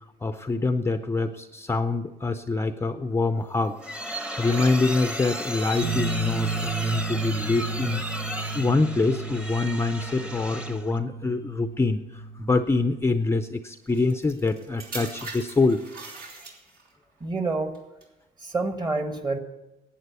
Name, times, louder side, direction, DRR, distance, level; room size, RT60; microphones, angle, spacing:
voice 1, 0.2-3.7 4.4-8.0 8.5-15.8, left 3 dB, 15° left, 9 dB, 0.5 m, -25 dB
sound 1, 3.4-11.0, equal, 5° right, 1.0 m, -34 dB
sound 2, 5.8-13.0, right 4 dB, 85° right, 5.3 m, -33 dB
sound 3, 13.9-17.0 17.7-18.0, right 3 dB, 65° right, 3.0 m, -41 dB
voice 2, 17.2-17.8 18.4-19.4, right 3 dB, 25° right, 7 dB, 1.5 m, -28 dB
11.0 x 8.9 x 8.2 m, 0.99 s
cardioid pair, 110°, 17 cm